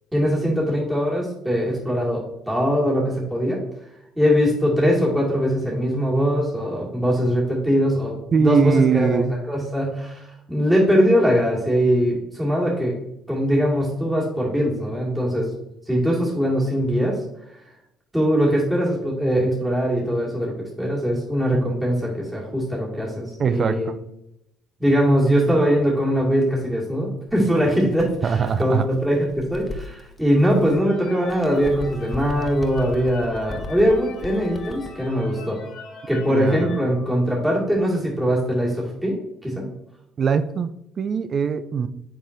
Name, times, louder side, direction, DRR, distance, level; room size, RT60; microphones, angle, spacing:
voice 1, 0.1-3.6 4.2-12.9 13.3-15.5 15.9-17.2 18.1-23.9 24.8-35.6 36.1-39.2 39.4-39.7, equal, 10° right, -4 dB, 2.4 m, -21 dB
voice 2, 8.3-9.3 23.4-24.0 28.2-28.9 36.3-36.8 40.2-41.9, right 6 dB, 45° right, 12 dB, 0.4 m, -22 dB
Bird, 27.3-30.8 31.2-35.1, left 3 dB, 25° left, 0.7 m, -38 dB
sound 1, 30.7-37.7, left 3 dB, 50° left, 1.1 m, -42 dB
7.3 x 4.7 x 2.7 m, 0.82 s
hypercardioid pair, 55°, 0 cm